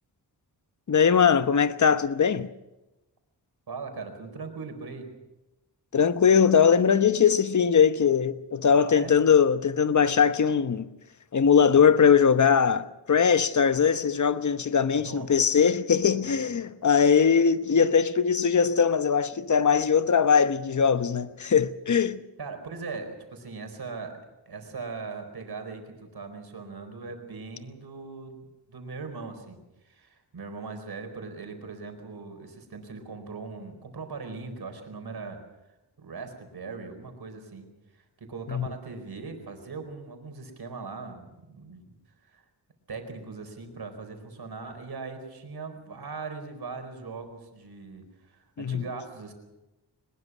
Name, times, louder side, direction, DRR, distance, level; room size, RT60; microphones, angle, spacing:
voice 1, 0.9-2.5 5.9-10.9 11.3-22.2 38.5-38.7 48.6-48.8, left 6 dB, 40° left, 1.0 m, -21 dB
voice 2, 3.7-5.1 8.8-9.1 15.0-15.3 22.4-24.2 24.5-29.6 29.8-35.4 36.0-37.7 37.9-41.8 42.2-42.4 42.9-49.3, right 4 dB, 60° right, 4.5 m, -40 dB
21.5 x 21.0 x 6.2 m
wide cardioid pair, 90°, 43 cm